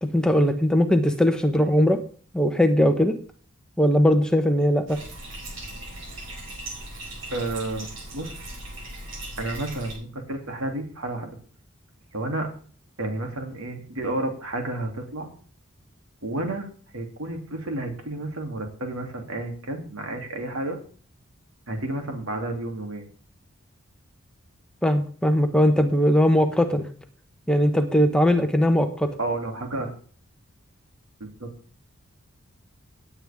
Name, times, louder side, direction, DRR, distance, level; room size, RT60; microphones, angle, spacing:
voice 1, 0.0-2.0 2.3-3.2 3.8-5.0 24.8-26.9 27.5-29.1, equal, 5° left, 6 dB, 1.0 m, -20 dB
Bathtub (filling or washing), 4.9-9.9, right 1 dB, 65° right, 4.8 m, -38 dB
voice 2, 7.3-7.9 8.1-8.5 9.4-11.4 12.1-12.5 13.0-15.3 16.2-16.7 16.9-20.8 21.7-23.1 29.2-29.9 31.2-31.5, right 2 dB, 85° right, 3 dB, 3.0 m, -31 dB
17.0 x 8.9 x 3.6 m, 0.43 s
head